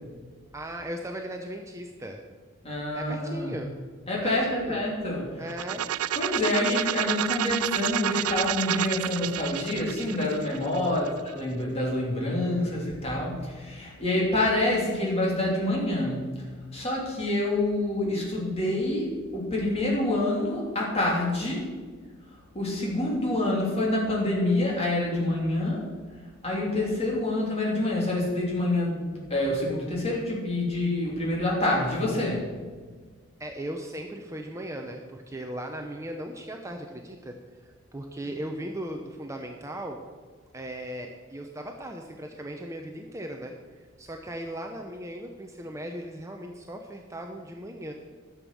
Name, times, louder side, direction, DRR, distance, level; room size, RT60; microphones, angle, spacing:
voice 1, 0.5-2.2 2.9-3.7 4.2-4.8 5.4-5.8 10.9-11.2 33.4-37.3 37.6-40.0 40.5-47.9, right 1 dB, 15° right, 3 dB, 0.7 m, -37 dB
voice 2, 2.6-3.5 4.1-5.4 5.7-5.8 6.1-16.3 16.7-21.7 22.5-25.9 26.4-32.5, left 1 dB, 30° left, -4 dB, 3.3 m, -27 dB
sound 1, 5.5-11.3, right 12 dB, 90° right, 0.4 m, -30 dB
12.5 x 7.1 x 6.2 m, 1.5 s
head